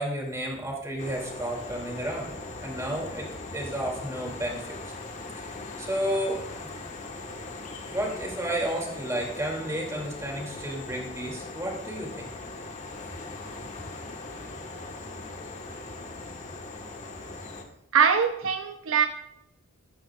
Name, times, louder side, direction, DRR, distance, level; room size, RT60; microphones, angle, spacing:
voice 1, 0.0-2.3 2.6-4.9 5.4-5.5 5.8-6.7 7.9-12.3, right 1 dB, 15° right, -1 dB, 2.6 m, -32 dB
sound 1, 1.0-17.6, left 2 dB, 35° left, 1.3 m, -40 dB
voice 2, 17.9-19.1, right 6 dB, 65° right, 6 dB, 0.7 m, -22 dB
14.0 x 14.0 x 2.4 m, 0.80 s
head